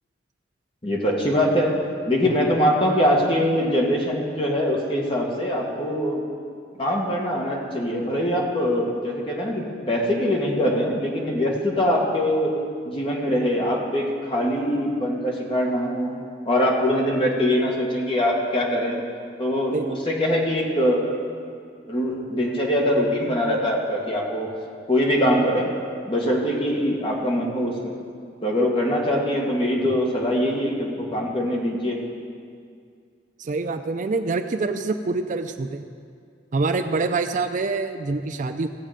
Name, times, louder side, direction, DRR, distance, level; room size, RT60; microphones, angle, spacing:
voice 1, 0.8-1.8 2.1-6.2 6.8-12.6 12.8-16.1 16.4-19.0 19.4-21.1 21.9-24.5 24.9-25.7 26.1-27.9 28.4-32.0, equal, 30° left, -2 dB, 1.8 m, -23 dB
voice 2, 33.4-35.8 36.5-38.7, right 3 dB, 45° right, 8 dB, 0.4 m, -26 dB
16.5 x 7.4 x 5.1 m, 2.2 s
head